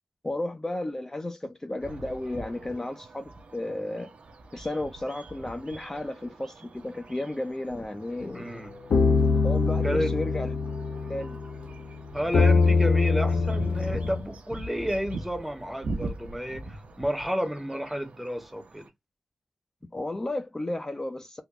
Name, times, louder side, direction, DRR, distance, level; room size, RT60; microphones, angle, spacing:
voice 1, 0.2-4.1 4.5-8.5 9.4-10.6 11.1-11.4 19.9-21.4, left 1 dB, 25° left, 0.6 m, -33 dB
sound 1, 1.8-18.9, right 2 dB, 75° right, 0.8 m, -42 dB
sound 2, 8.2-8.3 8.9-14.2, left 4 dB, 90° left, 0.5 m, -23 dB
voice 2, 8.3-8.7 9.8-10.1 12.1-18.9, equal, 5° right, 0.8 m, -31 dB
3.7 x 2.3 x 3.0 m
wide cardioid pair, 95°, 2 cm